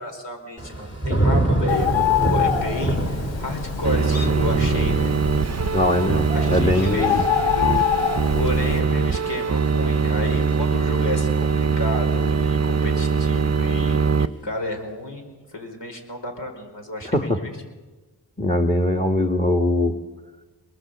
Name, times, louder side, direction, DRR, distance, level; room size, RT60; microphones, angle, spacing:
voice 1, 0.0-5.1 6.3-7.8 8.3-17.5, left 1 dB, 70° left, 3 dB, 4.8 m, -32 dB
Thunder / Rain, 0.6-11.5 11.9-12.4, right 1 dB, 35° left, 3.5 m, -28 dB
Bird, 1.7-8.8, left 9 dB, 90° left, 1.5 m, -25 dB
sound 1, 3.8-14.3, right 5 dB, 35° right, 0.7 m, -22 dB
voice 2, 5.7-7.2 17.1-17.4 18.4-20.0, left 1 dB, 15° left, 4 dB, 1.8 m, -21 dB
26.5 x 20.5 x 8.1 m, 1.3 s
cardioid pair, 45°, 44 cm